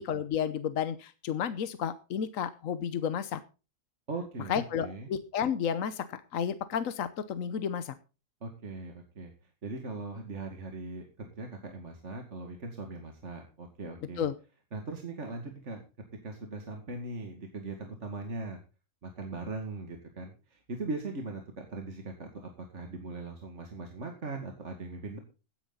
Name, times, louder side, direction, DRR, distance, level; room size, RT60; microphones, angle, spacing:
voice 1, 0.0-3.4 4.5-7.9 14.2-14.3, left 8 dB, 75° left, 13 dB, 1.3 m, -32 dB
voice 2, 4.1-5.1 8.4-9.3 9.6-14.2 14.7-15.8 16.2-18.6 19.0-25.2, right 3 dB, 60° right, 4 dB, 2.4 m, -40 dB
17.0 x 9.9 x 3.9 m, 0.32 s
omnidirectional pair, 1.4 m